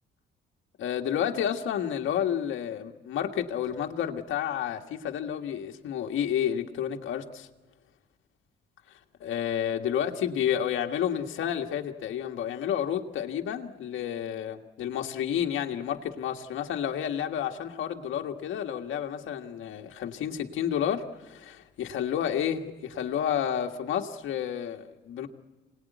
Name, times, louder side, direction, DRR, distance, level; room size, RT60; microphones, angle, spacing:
voice 1, 0.8-7.5 9.2-25.3, left 9 dB, 80° left, 3 dB, 1.7 m, -30 dB
26.5 x 19.0 x 9.3 m, 1.2 s
cardioid pair, 90°, 20 cm